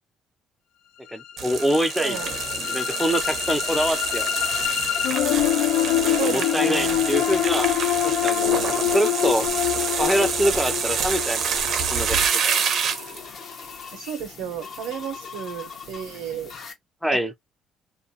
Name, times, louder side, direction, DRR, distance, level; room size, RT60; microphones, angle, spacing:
voice 1, 1.1-2.2 2.6-4.3 6.0-7.7 8.0-9.5 10.0-11.5 11.9-12.6 17.0-17.3, equal, ahead, 0.3 m, -25 dB
sound 1, 1.2-13.2, left 13 dB, 85° left, 0.3 m, -25 dB
sound 2, 1.4-13.2, right 6 dB, 50° right, 0.5 m, -27 dB
voice 2, 2.0-2.3 6.2-7.0 13.9-16.5, right 9 dB, 85° right, 0.7 m, -33 dB
sound 3, 2.1-16.7, left 5 dB, 45° left, 0.7 m, -40 dB
2.4 x 2.2 x 2.6 m
cardioid pair, 130°, 0 cm